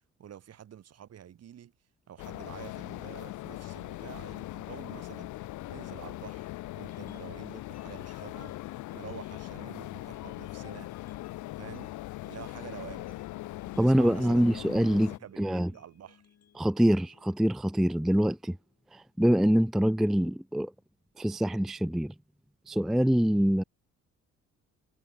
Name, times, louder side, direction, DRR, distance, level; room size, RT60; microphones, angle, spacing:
voice 1, 0.2-1.7 2.1-5.3 5.7-6.5 6.7-8.5 8.9-10.9 11.6-11.9 12.2-13.2 13.7-14.5 14.9-16.2, right 10 dB, 55° right, 1.5 m, -48 dB
sound 1, 2.2-15.2, left 17 dB, 80° left, 0.6 m, -40 dB
sound 2, 6.7-18.8, left 9 dB, 55° left, 3.8 m, -61 dB
voice 2, 13.8-15.7 16.6-18.6 18.9-20.7 21.2-22.1 22.7-23.6, equal, ahead, 0.4 m, -25 dB
cardioid pair, 90°, 30 cm